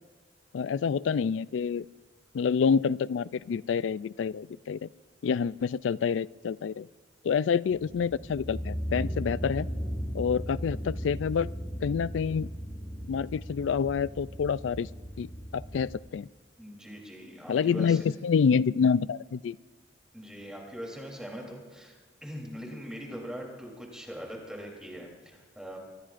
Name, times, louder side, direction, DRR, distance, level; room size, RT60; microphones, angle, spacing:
voice 1, 0.5-1.9 2.3-4.9 5.2-6.9 7.2-9.7 10.1-11.5 11.8-12.5 13.1-14.9 15.2-16.3 17.5-19.6, left 6 dB, 80° left, 19 dB, 0.3 m, -27 dB
sound 1, 7.7-15.9, equal, 20° left, 1.9 m, -37 dB
voice 2, 16.6-18.0 20.1-25.8, equal, 5° right, 0 dB, 3.3 m, -41 dB
24.5 x 20.5 x 2.5 m, 1.5 s
head